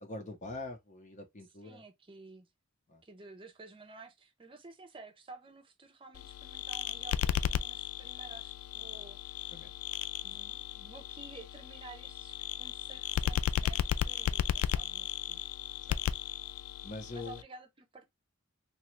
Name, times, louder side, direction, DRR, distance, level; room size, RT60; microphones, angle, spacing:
voice 1, 0.0-1.8 2.9-3.0 9.5-9.7 15.9-16.0 16.8-17.4, left 2 dB, 35° left, 0.8 m, -43 dB
voice 2, 1.6-2.5 3.0-9.7 10.2-15.4 17.1-18.1, right 3 dB, 25° right, 0.7 m, -52 dB
sound 1, 6.1-17.4, left 9 dB, 85° left, 0.3 m, -35 dB
2.9 x 2.4 x 3.1 m
head